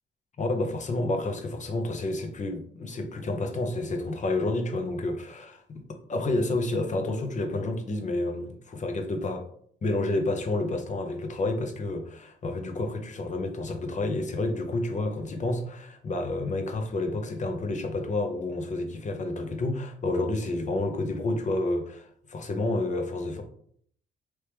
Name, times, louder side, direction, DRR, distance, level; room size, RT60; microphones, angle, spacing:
voice 1, 0.4-5.8 6.1-9.4 9.8-23.4, left 2 dB, 40° left, 4 dB, 0.7 m, -29 dB
3.0 x 3.0 x 3.4 m, 0.62 s
cardioid pair, 90°, 20 cm